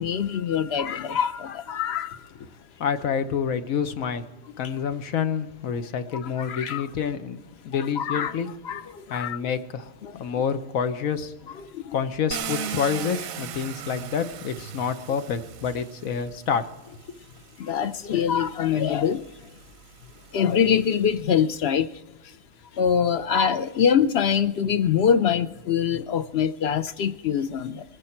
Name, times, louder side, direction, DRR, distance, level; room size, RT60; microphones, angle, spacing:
voice 1, 0.0-2.2 6.4-6.9 7.7-8.4 8.6-9.4 10.0-10.1 11.7-12.0 17.6-19.2 20.3-21.9 22.8-27.8, left 7 dB, 60° left, 0.8 m, -24 dB
voice 2, 2.8-4.2 4.6-8.5 9.1-9.9 10.2-11.3 11.9-17.0, left 7 dB, 85° left, 1.4 m, -28 dB
Car, 12.3-16.4 17.4-17.5 18.0-21.3, right 8 dB, 90° right, 1.1 m, -37 dB
21.5 x 10.0 x 4.4 m
omnidirectional pair, 1.4 m